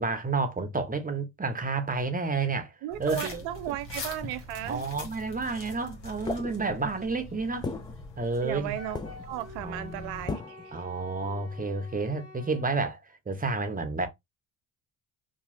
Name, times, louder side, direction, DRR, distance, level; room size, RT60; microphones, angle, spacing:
voice 1, 0.0-3.8 4.7-7.7 8.2-8.8 9.6-10.3 10.7-13.0 13.3-14.1, right 3 dB, 20° right, 0.7 m, -30 dB
voice 2, 2.8-4.8 8.4-10.8, right 14 dB, 75° right, 0.5 m, -35 dB
sound 1, 2.9-10.3, left 3 dB, 65° left, 1.2 m, -43 dB
sound 2, 6.3-7.0 7.6-8.7 8.9-9.5 10.3-10.8, left 3 dB, 10° left, 0.3 m, -36 dB
Wind instrument woodwind instrument, 8.7-12.7, left 3 dB, 30° left, 1.0 m, -48 dB
2.8 x 2.4 x 2.6 m
hypercardioid pair, 50°, 46 cm